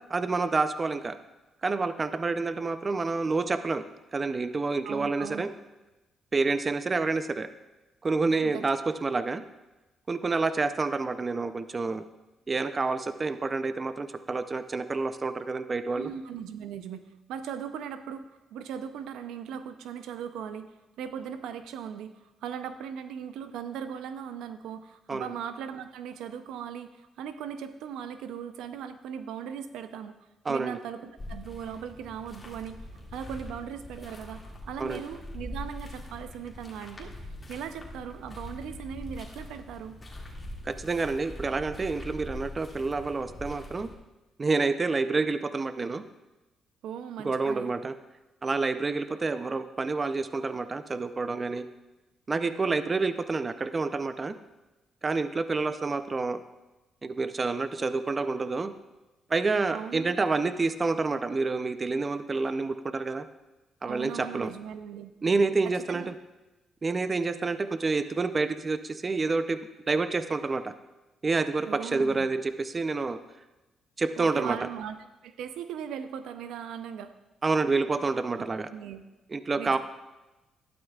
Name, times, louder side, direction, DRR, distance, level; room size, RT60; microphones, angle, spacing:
voice 1, 0.1-1.2 1.6-3.8 4.1-5.5 6.3-7.5 8.0-9.4 10.1-12.0 12.5-16.1 25.1-25.3 30.5-30.8 34.8-35.0 40.6-43.9 44.4-46.0 47.2-48.0 48.4-51.7 52.3-54.3 55.0-56.4 57.0-58.7 59.3-63.3 63.8-64.5 65.2-66.1 66.8-69.6 69.9-70.7 71.2-73.2 74.0-74.6 77.4-78.7 79.3-79.8, right 3 dB, 30° right, 11 dB, 0.5 m, -28 dB
voice 2, 4.8-5.5 8.4-8.6 15.9-18.2 18.5-32.8 33.1-37.1 37.5-40.0 46.8-47.7 59.7-60.1 63.8-65.1 65.6-66.1 71.7-72.3 74.2-75.0 75.2-77.1 78.7-79.0 79.6-79.8, right 8 dB, 85° right, 10 dB, 0.6 m, -39 dB
sound 1, 31.2-43.9, left 1 dB, 25° left, 2.2 m, -43 dB
12.0 x 11.5 x 2.4 m, 1.1 s
cardioid pair, 90°, 0 cm